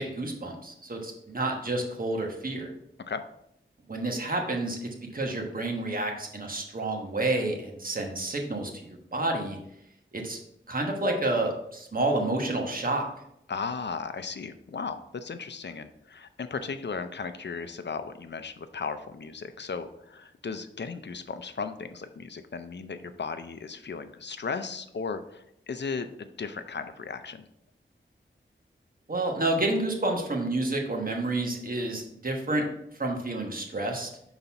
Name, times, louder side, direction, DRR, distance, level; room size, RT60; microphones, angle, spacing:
voice 1, 0.0-2.7 3.9-9.6 10.1-10.4 10.7-13.1 29.1-32.7 32.9-34.1, right 2 dB, 45° right, 1 dB, 1.2 m, -29 dB
voice 2, 13.5-27.4, left 5 dB, 60° left, 10 dB, 0.5 m, -36 dB
5.6 x 4.0 x 4.6 m, 0.78 s
wide cardioid pair, 60°, 20 cm